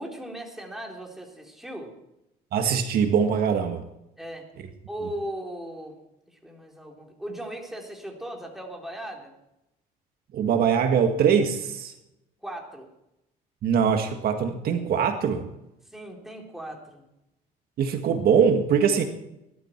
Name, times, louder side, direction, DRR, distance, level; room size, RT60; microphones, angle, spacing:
voice 1, 0.0-1.9 4.2-4.5 4.9-6.0 6.3-9.3 12.4-12.9 15.8-17.1, right 1 dB, ahead, 0 dB, 3.9 m, -38 dB
voice 2, 2.5-3.8 10.3-11.9 13.6-15.4 17.8-19.0, right 7 dB, 65° right, 5 dB, 1.7 m, -22 dB
20.5 x 12.5 x 4.6 m, 0.87 s
cardioid pair, 110°, 17 cm